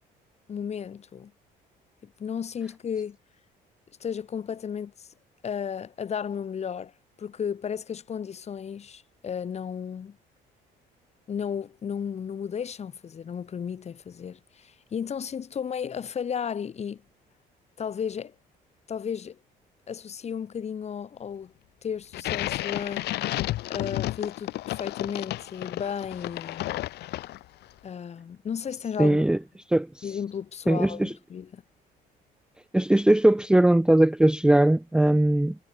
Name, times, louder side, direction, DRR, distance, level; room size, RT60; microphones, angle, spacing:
voice 1, 0.5-1.3 2.0-3.2 4.0-5.1 5.4-6.9 7.2-10.2 11.3-17.0 17.8-18.3 18.9-19.4 19.9-21.5 21.8-23.1 23.7-26.7 27.8-29.3 30.0-31.6, left 7 dB, 40° left, 2.1 m, -34 dB
sound 1, 22.1-27.6, left 16 dB, 75° left, 2.8 m, -32 dB
voice 2, 29.0-29.4 29.7-30.0 30.7-31.1 32.7-35.6, right 1 dB, 5° right, 0.7 m, -20 dB
cardioid pair, 110°, 17 cm